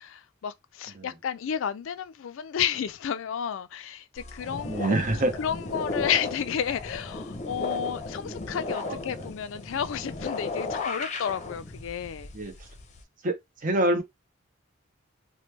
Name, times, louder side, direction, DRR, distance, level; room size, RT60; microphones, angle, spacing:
voice 1, 0.0-5.0 5.4-12.3, left 8 dB, 75° left, 0.4 m, -31 dB
sound 1, 4.2-13.0, left 3 dB, 35° left, 0.6 m, -35 dB
voice 2, 4.6-5.3 8.8-9.0 12.3-12.5 13.2-13.3 13.6-14.0, right 1 dB, 40° right, 0.8 m, -25 dB
3.1 x 2.2 x 3.2 m
head